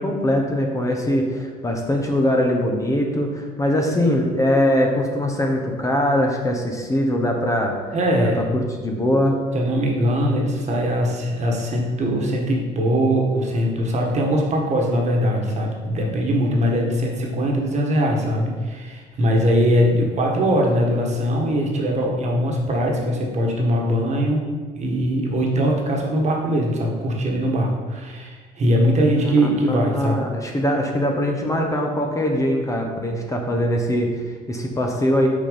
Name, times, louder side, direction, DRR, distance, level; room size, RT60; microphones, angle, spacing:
voice 1, 0.0-7.7 8.2-9.4 29.2-29.3 29.6-35.3, left 1 dB, 20° left, 1 dB, 0.9 m, -22 dB
voice 2, 7.9-8.4 9.5-24.4 24.8-30.3, equal, 40° right, 0 dB, 1.4 m, -21 dB
6.0 x 4.3 x 5.1 m, 1.5 s
cardioid pair, 110°, 17 cm